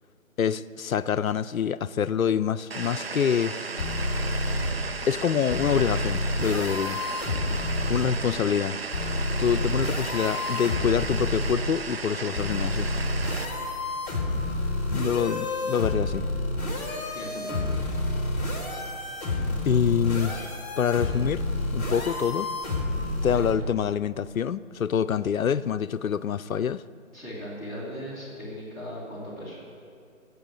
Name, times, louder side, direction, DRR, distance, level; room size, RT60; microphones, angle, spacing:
voice 1, 0.4-3.6 5.1-7.0 7.9-8.8 9.4-12.9 14.9-16.3 19.7-20.5 20.8-21.4 21.7-22.5 23.2-26.8, left 8 dB, 80° left, 16 dB, 0.5 m, -26 dB
sound 1, 2.7-13.5, right 4 dB, 50° right, 0.7 m, -35 dB
sound 2, 3.8-4.7 5.5-8.1 8.9-11.6 12.4-23.5, left 2 dB, 30° left, 2.2 m, -29 dB
voice 2, 8.0-8.4 17.1-17.7 23.3-23.4 27.1-29.6, equal, ahead, -12 dB, 1.7 m, -38 dB
9.5 x 8.3 x 8.5 m, 2.3 s
figure-of-eight pair, 150°, 41 cm